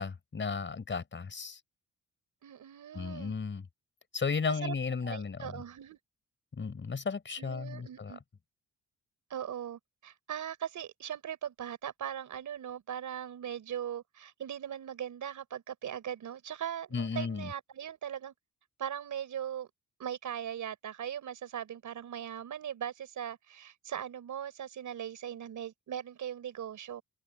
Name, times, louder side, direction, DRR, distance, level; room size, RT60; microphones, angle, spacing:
voice 1, 0.0-1.6 2.9-3.7 4.1-5.6 6.5-8.2 16.9-17.5, left 5 dB, 35° left, 5.4 m, -34 dB
voice 2, 2.4-3.3 4.5-4.7 5.0-6.0 7.4-8.2 9.3-18.3 18.8-19.7 20.0-27.0, right 9 dB, 70° right, 4.5 m, -39 dB
open air
cardioid pair, 105°, 31 cm